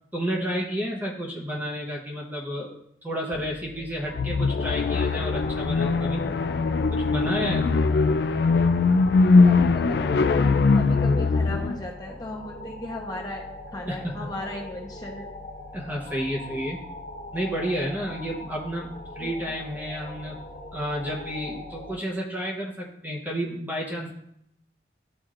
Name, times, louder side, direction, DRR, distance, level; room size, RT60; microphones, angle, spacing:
voice 1, 0.1-6.3 6.9-7.8 13.9-14.3 15.7-16.8 17.3-20.4 20.7-24.1, equal, 10° right, -3 dB, 0.8 m, -31 dB
sound 1, 3.3-21.9, left 1 dB, 45° left, 1.6 m, -41 dB
sound 2, 4.1-11.8, left 4 dB, 60° left, 0.3 m, -21 dB
voice 2, 9.4-13.5 13.7-15.3 19.2-19.5, left 1 dB, 20° left, -1 dB, 1.0 m, -37 dB
12.0 x 4.3 x 2.5 m, 0.74 s
head